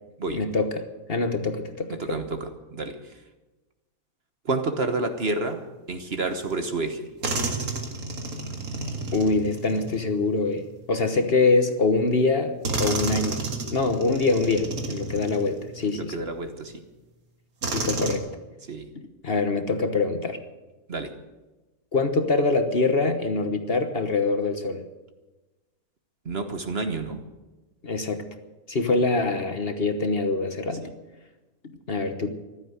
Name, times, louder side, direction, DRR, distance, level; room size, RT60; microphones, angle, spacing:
voice 1, 0.3-2.0 9.1-10.6 10.9-16.1 17.7-18.3 19.2-20.4 21.9-24.8 27.8-28.3 28.7-30.9 31.9-32.3, left 3 dB, 45° left, 7 dB, 1.4 m, -24 dB
voice 2, 1.9-3.2 4.4-7.1 15.9-16.8 18.6-18.9 20.9-21.1 26.2-27.2 30.8-30.9, right 3 dB, 45° right, 7 dB, 1.4 m, -30 dB
sound 1, 6.5-6.6 7.2-10.9 11.8-11.9 12.6-16.0 16.6-16.7 17.6-18.2, right 3 dB, 75° right, 2.4 m, -31 dB
15.0 x 12.0 x 8.0 m, 1.1 s
omnidirectional pair, 1.5 m